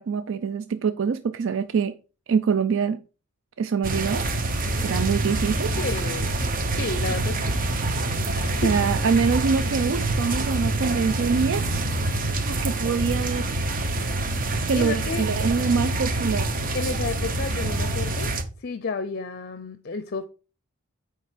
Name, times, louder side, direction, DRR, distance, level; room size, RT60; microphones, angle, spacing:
voice 1, 0.0-1.9 2.3-3.0 3.6-4.3 4.8-5.7 8.5-11.9 12.2-14.0 14.3-16.5, right 5 dB, 60° right, 0.4 m, -25 dB
sound 1, 3.8-18.4, right 2 dB, 40° right, 0.8 m, -26 dB
voice 2, 5.8-7.6 8.3-8.7 14.7-15.5 16.7-18.3 18.6-20.2, left 4 dB, 45° left, 0.5 m, -32 dB
8.7 x 3.3 x 4.9 m
head